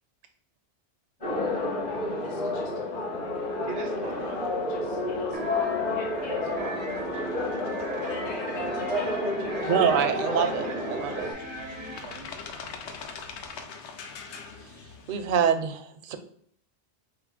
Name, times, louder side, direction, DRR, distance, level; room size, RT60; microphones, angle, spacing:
sound 1, 1.2-11.3, left 2 dB, 65° left, 1.9 m, -30 dB
voice 1, 2.2-3.5 3.9-4.3 4.7-7.0 8.0-10.1 11.2-11.3, left 3 dB, 50° left, 0 dB, 0.9 m, -42 dB
voice 2, 3.6-4.5 7.1-7.3 10.0-12.4, right 7 dB, 80° right, 6 dB, 0.9 m, -41 dB
sound 2, 3.9-15.4, left 5 dB, 90° left, 0.9 m, -45 dB
sound 3, 5.3-12.0, right 1 dB, 15° right, 0.3 m, -39 dB
voice 3, 9.7-11.3 15.1-16.2, right 8 dB, 60° right, 7 dB, 0.6 m, -25 dB
4.7 x 2.0 x 4.7 m, 0.64 s
omnidirectional pair, 1.1 m